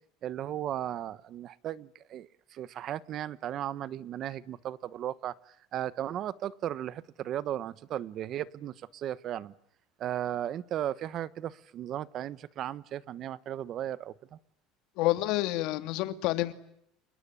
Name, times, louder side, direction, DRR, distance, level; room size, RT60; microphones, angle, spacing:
voice 1, 0.2-9.5 10.0-14.4, right 11 dB, 40° right, 19 dB, 1.1 m, -36 dB
voice 2, 15.0-16.5, left 17 dB, 60° left, 12 dB, 2.3 m, -28 dB
28.5 x 21.0 x 9.9 m, 0.73 s
cardioid pair, 155°, 0 cm